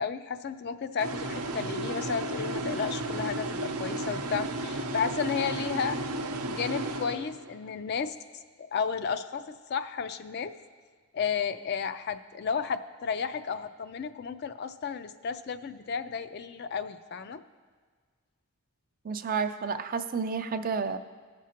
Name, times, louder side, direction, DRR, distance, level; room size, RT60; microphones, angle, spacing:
voice 1, 0.0-6.0 6.5-8.1 8.6-10.5 11.1-17.4, left 6 dB, 50° left, 9 dB, 0.3 m, -33 dB
sound 1, 1.0-7.7, right 2 dB, 90° right, 0.6 m, -33 dB
voice 2, 19.0-21.0, right 5 dB, 40° right, 9 dB, 0.3 m, -30 dB
16.5 x 6.1 x 2.9 m, 1.5 s
head